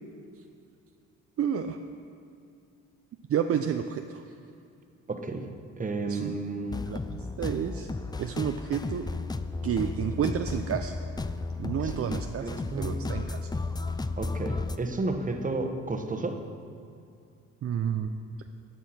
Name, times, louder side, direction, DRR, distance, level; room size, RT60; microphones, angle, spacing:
voice 1, 1.4-1.8 3.3-4.2 6.1-6.4 6.9-7.9 8.2-9.1 9.6-11.0 11.6-13.5 17.6-18.1, right 8 dB, 50° right, 7 dB, 0.5 m, -30 dB
voice 2, 5.1-5.5 5.8-6.8 11.8-12.1 12.4-13.0 14.2-16.4, right 3 dB, 25° right, 5 dB, 1.1 m, -32 dB
sound 1, 6.7-14.8, left 3 dB, 15° left, 0.4 m, -34 dB
14.0 x 9.4 x 4.3 m, 2.4 s
cardioid pair, 90°, 30 cm